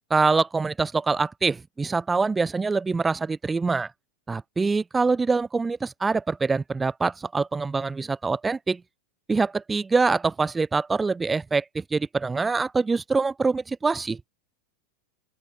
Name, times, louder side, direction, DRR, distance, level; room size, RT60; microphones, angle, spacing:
voice 1, 0.1-3.9 4.3-8.8 9.3-14.2, right 4 dB, 10° right, 1.0 m, -24 dB
open air
figure-of-eight pair, 90°, 0 cm